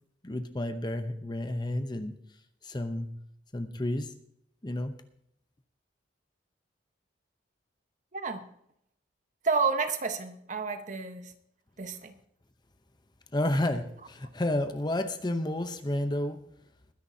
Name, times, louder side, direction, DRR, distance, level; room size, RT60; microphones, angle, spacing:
voice 1, 0.2-2.2 2.6-3.1 3.5-4.1 4.6-5.0 13.3-16.4, left 1 dB, 25° left, 9 dB, 0.8 m, -31 dB
voice 2, 8.1-8.5 9.4-11.3 11.8-12.1, right 4 dB, 40° right, 7 dB, 1.2 m, -30 dB
21.0 x 10.5 x 2.8 m, 0.71 s
head